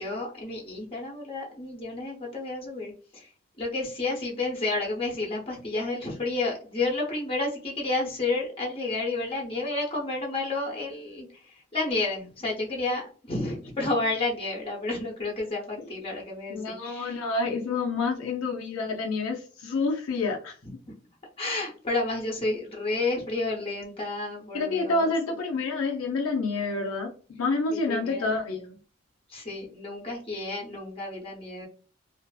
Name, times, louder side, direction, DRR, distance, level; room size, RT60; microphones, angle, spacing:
voice 1, 0.0-3.3 3.6-17.2 20.6-20.9 21.4-25.1 27.7-28.3 29.3-31.7, left 2 dB, 25° left, -2 dB, 0.7 m, -31 dB
voice 2, 16.5-20.5 24.5-27.1 27.4-28.8, left 3 dB, 85° left, -1 dB, 0.5 m, -28 dB
2.5 x 2.4 x 2.2 m, 0.39 s
head